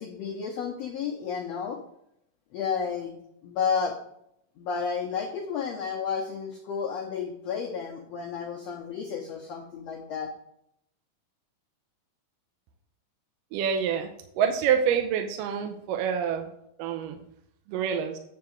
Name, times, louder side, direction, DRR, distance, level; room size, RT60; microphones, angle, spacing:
voice 1, 0.0-1.8 2.5-3.1 3.4-4.0 4.6-10.3, left 6 dB, 80° left, 0 dB, 1.5 m, -31 dB
voice 2, 13.5-14.1 14.4-16.5 16.8-17.2 17.7-18.2, right 7 dB, 85° right, 4 dB, 2.2 m, -26 dB
9.4 x 3.5 x 6.5 m, 0.74 s
omnidirectional pair, 4.0 m